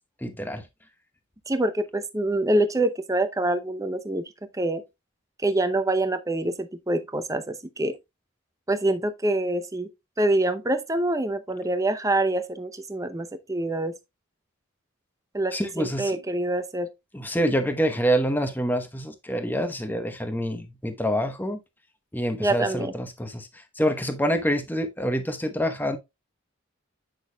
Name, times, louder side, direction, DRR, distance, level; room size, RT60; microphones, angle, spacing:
voice 1, 0.2-0.6 15.5-16.2 17.1-21.6 22.1-26.0, equal, 10° left, 0.9 m, -26 dB
voice 2, 1.5-4.2 4.5-4.8 5.4-7.9 8.7-9.9 10.2-13.9 15.3-16.9 22.4-22.9, right 1 dB, 15° right, 0.6 m, -25 dB
8.4 x 6.3 x 2.3 m
head